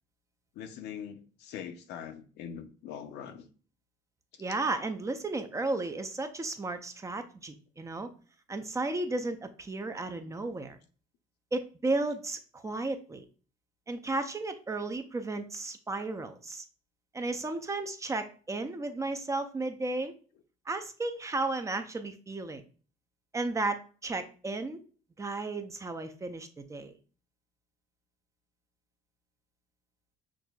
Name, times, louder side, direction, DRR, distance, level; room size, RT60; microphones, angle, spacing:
voice 1, 0.5-3.5 4.3-4.4, left 8 dB, 85° left, 0.6 m, -42 dB
voice 2, 4.4-8.1 8.5-10.8 11.5-13.2 13.9-16.6 17.1-20.1 20.7-22.6 23.3-24.8 25.2-26.9, right 2 dB, 20° right, 0.4 m, -34 dB
6.0 x 2.4 x 2.3 m
cardioid pair, 110°, 17 cm